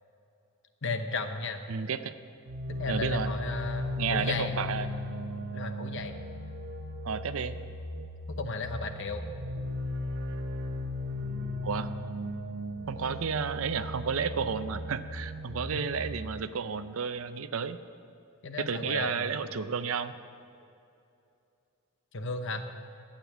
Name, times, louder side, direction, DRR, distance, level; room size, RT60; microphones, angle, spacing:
voice 1, 0.8-1.6 2.8-4.5 5.5-6.1 8.3-9.2 15.7-15.8 18.4-19.4 22.1-22.6, left 3 dB, 60° left, 7 dB, 0.9 m, -34 dB
voice 2, 1.7-2.1 2.9-3.3 4.0-4.9 7.0-7.6 11.6-11.9 12.9-17.8 18.6-20.1, right 6 dB, 70° right, 12 dB, 0.5 m, -32 dB
sound 1, 2.5-16.1, left 1 dB, 50° right, 0.9 m, -36 dB
13.0 x 8.9 x 7.3 m, 2.6 s
head